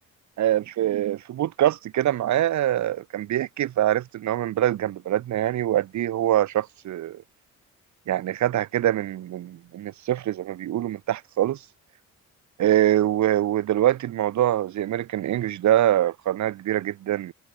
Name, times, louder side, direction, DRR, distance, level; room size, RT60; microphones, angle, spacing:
voice 1, 0.4-7.2 8.1-11.6 12.6-17.3, right 12 dB, 70° right, 1.5 m, -24 dB
cardioid pair, 90°, 30 cm